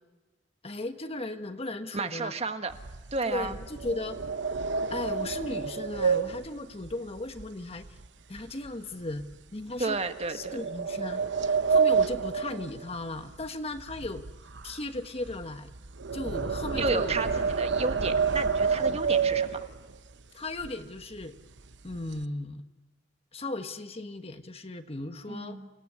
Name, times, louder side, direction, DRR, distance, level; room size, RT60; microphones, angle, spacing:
voice 1, 0.6-2.3 3.2-4.2 4.9-7.9 8.3-9.2 9.5-10.0 10.3-14.2 14.6-15.7 16.1-17.1 20.3-21.4 21.8-22.6 23.3-25.6, left 2 dB, 35° left, 8 dB, 1.3 m, -36 dB
voice 2, 1.9-2.7 3.1-3.6 9.8-10.6 16.8-19.6 25.3-25.7, right 3 dB, 35° right, 8 dB, 1.5 m, -32 dB
sound 1, 2.7-8.1 8.4-8.7 9.2-9.3 10.2-13.5 13.7-20.0 20.6-20.7 21.0-21.3 21.6-22.2, right 5 dB, 70° right, 0.9 m, -29 dB
28.5 x 18.5 x 9.6 m, 1.2 s
head